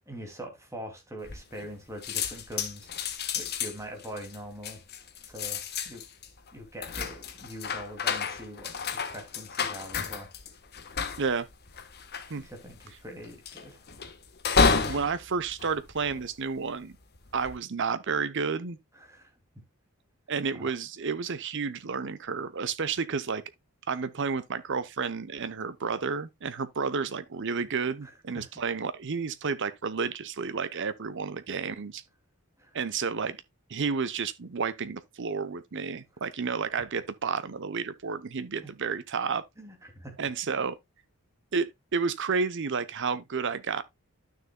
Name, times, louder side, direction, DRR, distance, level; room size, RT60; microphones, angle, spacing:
voice 1, 0.1-2.9 3.3-4.8 5.2-6.0 6.5-8.7 9.1-10.3 12.4-13.8 18.9-19.3 20.5-20.7 28.0-28.5 32.6-32.8 38.6-38.7 39.6-40.1, equal, 15° right, 2.5 m, -43 dB
sound 1, 1.2-1.8 2.0-16.6 17.1-17.6, left 5 dB, 45° left, 1.2 m, -31 dB
voice 2, 14.5-17.0 17.3-18.8 20.3-23.4 23.9-32.0 32.7-33.4 33.7-39.4 40.2-40.8 41.5-43.8, right 5 dB, 55° right, 0.7 m, -31 dB
12.0 x 6.6 x 2.2 m
head